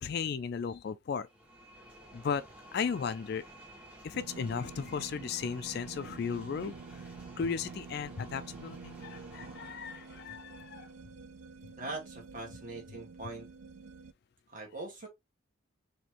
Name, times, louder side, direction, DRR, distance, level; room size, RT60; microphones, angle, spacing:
voice 1, 0.0-1.3 2.1-2.5 2.7-3.5 4.0-7.0 7.4-10.9, left 6 dB, 50° left, 0.3 m, -35 dB
sound 1, 1.2-11.0, right 1 dB, 5° right, 1.2 m, -54 dB
sound 2, 4.1-14.1, right 4 dB, 75° right, 0.4 m, -48 dB
voice 2, 11.8-13.5 14.5-15.1, right 2 dB, 40° right, 1.7 m, -41 dB
4.2 x 2.8 x 2.9 m
head